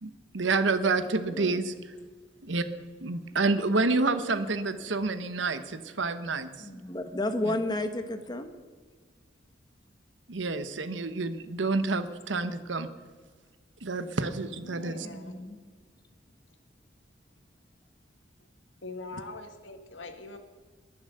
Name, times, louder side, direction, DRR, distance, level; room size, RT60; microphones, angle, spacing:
voice 1, 0.0-1.7 2.4-2.6 3.0-6.7 7.4-7.5 10.3-12.9 13.8-15.1, right 3 dB, 85° right, 11 dB, 1.0 m, -28 dB
voice 2, 1.3-1.7 6.6-8.6 15.0-15.6, left 1 dB, 20° left, 8 dB, 1.1 m, -32 dB
voice 3, 14.6-15.4 18.8-20.4, left 3 dB, 90° left, 7 dB, 1.6 m, -42 dB
21.5 x 7.2 x 6.5 m, 1.5 s
head